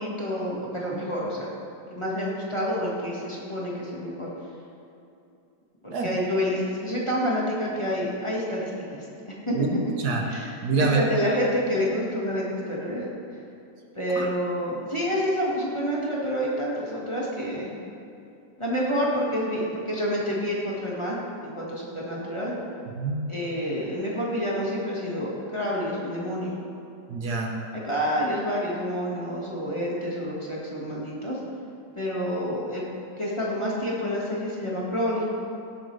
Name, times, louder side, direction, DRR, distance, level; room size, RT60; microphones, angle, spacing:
voice 1, 0.0-1.5 1.9-4.3 5.8-9.5 10.3-13.0 13.9-17.7 18.6-21.2 21.4-22.5 23.3-26.6 27.7-31.4 31.9-32.9 33.2-35.2, equal, 15° left, -5 dB, 1.7 m, -28 dB
voice 2, 9.6-10.3 10.6-11.0 14.2-14.3 23.0-23.2 27.1-27.5, right 4 dB, 70° right, 1 dB, 1.5 m, -26 dB
17.5 x 7.9 x 3.4 m, 2.6 s
omnidirectional pair, 1.8 m